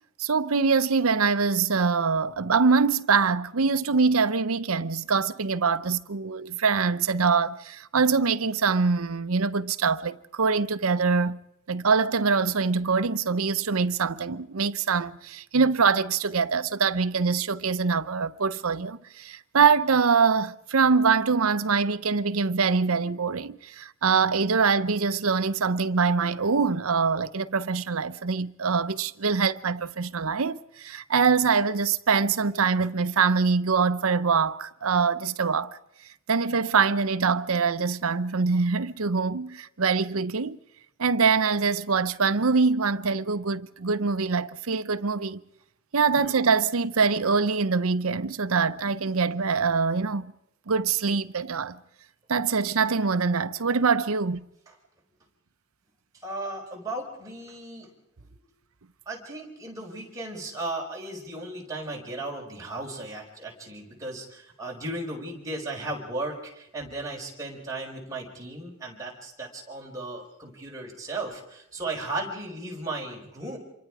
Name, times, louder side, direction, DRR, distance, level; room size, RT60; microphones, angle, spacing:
voice 1, 0.2-11.4 11.7-35.8 36.3-40.6 41.0-45.4 45.9-50.3 50.7-51.8 52.3-54.4, right 5 dB, 80° right, 0.8 m, -24 dB
voice 2, 56.2-57.9 59.0-73.6, right 2 dB, 15° right, 5.1 m, -36 dB
27.0 x 23.5 x 4.9 m
head